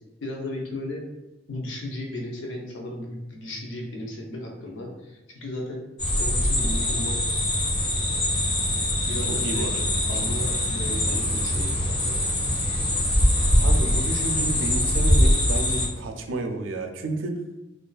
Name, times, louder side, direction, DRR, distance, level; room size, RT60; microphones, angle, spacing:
voice 1, 0.2-1.0 1.5-5.8 6.1-7.3 9.1-9.7 10.1-12.2, left 1 dB, 80° left, -1 dB, 0.6 m, -35 dB
sound 1, 6.0-15.9, left 1 dB, 60° left, 1.0 m, -23 dB
voice 2, 13.6-17.3, right 2 dB, 90° right, 5 dB, 0.4 m, -31 dB
2.3 x 2.3 x 2.3 m, 1.0 s
head